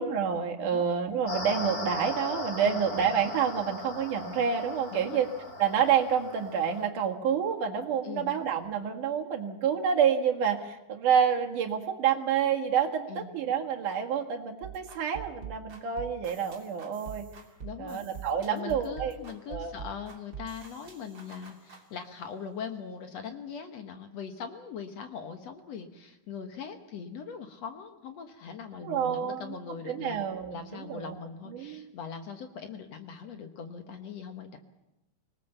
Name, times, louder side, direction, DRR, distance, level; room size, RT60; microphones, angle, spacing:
voice 1, 0.0-5.3 5.6-17.3 17.8-19.2 19.5-19.7 28.8-29.5 29.9-31.2 31.5-31.8, right 7 dB, 70° right, 2 dB, 3.2 m, -28 dB
sound 1, 1.3-6.8, left 2 dB, 30° left, 3.1 m, -38 dB
voice 2, 4.9-5.2 8.0-8.3 13.1-13.3 17.6-18.0 18.5-30.2 30.5-34.6, left 6 dB, 60° left, 6 dB, 2.1 m, -41 dB
sound 2, 14.6-21.8, right 7 dB, 35° right, 3.7 m, -45 dB
25.5 x 19.0 x 7.1 m, 0.93 s
omnidirectional pair, 3.8 m